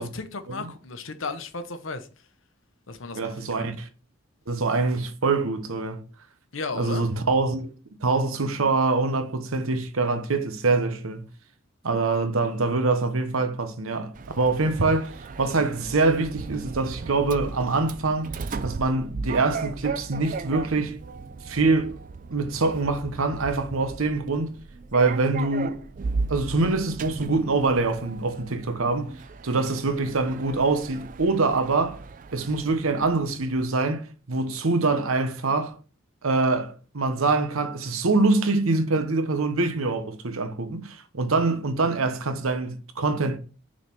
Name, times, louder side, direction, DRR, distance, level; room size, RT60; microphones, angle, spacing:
voice 1, 0.0-2.1 2.9-3.7 6.5-7.1, left 3 dB, 75° left, 0.9 m, -35 dB
voice 2, 3.1-3.9 4.5-6.0 6.7-7.7 8.0-11.3 11.8-18.3 18.6-21.0 21.4-22.0 22.3-24.5 24.9-25.8 26.3-29.1 29.4-32.0 32.3-35.7 36.2-43.4, right 3 dB, 90° right, 1.0 m, -24 dB
Sliding door, 14.1-33.7, right 4 dB, 40° right, 0.4 m, -37 dB
6.2 x 4.1 x 4.5 m
head